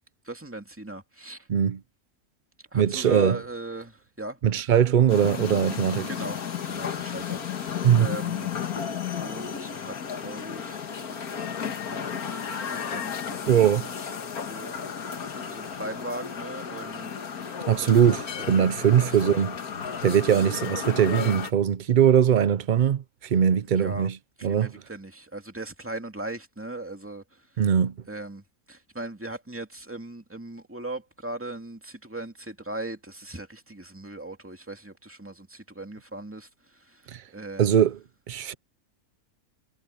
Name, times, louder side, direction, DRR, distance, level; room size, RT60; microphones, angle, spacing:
voice 1, 0.2-1.5 2.7-4.4 6.1-6.4 6.6-8.6 9.1-14.8 15.5-17.1 17.8-18.1 18.4-19.4 23.8-24.1 24.4-27.4 28.1-37.7, right 2 dB, 10° right, 2.4 m, -39 dB
voice 2, 1.5-1.8 2.7-3.4 4.4-6.1 7.8-8.1 13.5-13.9 17.7-19.6 20.0-24.2 24.4-24.7 27.6-27.9 37.1-37.2 37.6-38.0 38.3-38.5, right 9 dB, 75° right, 0.4 m, -21 dB
sound 1, 5.1-21.5, left 7 dB, 75° left, 1.9 m, -33 dB
omnidirectional pair, 1.6 m